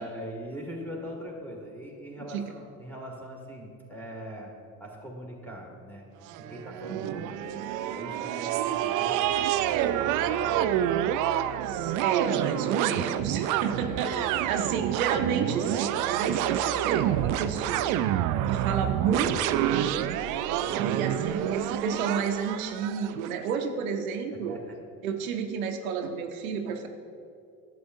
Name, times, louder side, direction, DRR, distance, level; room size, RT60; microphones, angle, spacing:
voice 1, 0.0-4.5 4.8-6.1 6.4-7.6 7.9-10.7 13.6-14.5 20.4-21.1 24.5-24.8, equal, 5° left, -1 dB, 2.0 m, -42 dB
sound 1, 6.3-23.4, right 11 dB, 50° right, 0.4 m, -28 dB
voice 2, 6.8-7.2 11.6-18.0 18.5-20.3 20.7-24.6 25.0-26.9, right 6 dB, 80° right, 5 dB, 0.7 m, -31 dB
11.0 x 7.7 x 2.7 m, 2.4 s
hypercardioid pair, 70°, 41 cm